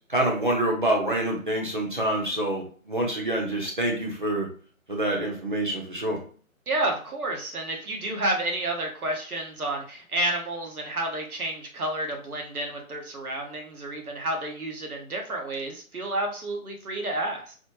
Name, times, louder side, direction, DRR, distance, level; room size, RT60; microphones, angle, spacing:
voice 1, 0.1-4.5 4.9-6.2, right 1 dB, 35° right, -1 dB, 0.8 m, -26 dB
voice 2, 6.7-17.5, right 1 dB, 90° right, 2 dB, 1.2 m, -30 dB
4.2 x 2.0 x 3.0 m, 0.43 s
figure-of-eight pair, 170°, 43 cm